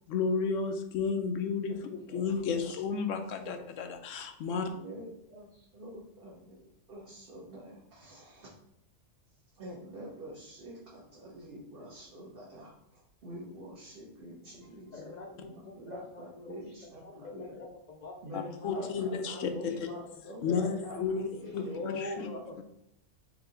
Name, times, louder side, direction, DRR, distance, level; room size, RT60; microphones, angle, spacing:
voice 1, 0.1-1.8 2.1-4.7 18.3-19.9 20.4-22.3, left 5 dB, 80° left, 6 dB, 0.9 m, -32 dB
voice 2, 1.7-2.6 3.4-3.5 4.5-8.5 9.5-17.6 18.2-21.8, right 1 dB, 50° right, -6 dB, 1.1 m, -47 dB
voice 3, 14.9-16.6 17.0-18.9 19.3-19.7 20.2-20.4 21.7-22.6, left 2 dB, 45° left, 1 dB, 0.6 m, -43 dB
4.8 x 2.8 x 3.8 m, 0.78 s
omnidirectional pair, 1.3 m